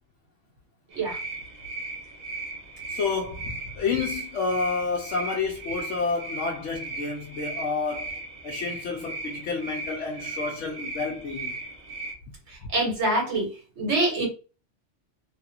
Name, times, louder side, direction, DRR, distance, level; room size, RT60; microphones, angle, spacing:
sound 1, 0.9-12.1, right 3 dB, 40° right, 0.8 m, -37 dB
voice 1, 2.9-11.6, left 4 dB, 90° left, 1.0 m, -30 dB
voice 2, 12.7-13.5 13.8-14.3, right 2 dB, 70° right, 1.7 m, -24 dB
3.3 x 2.4 x 2.8 m
omnidirectional pair, 1.2 m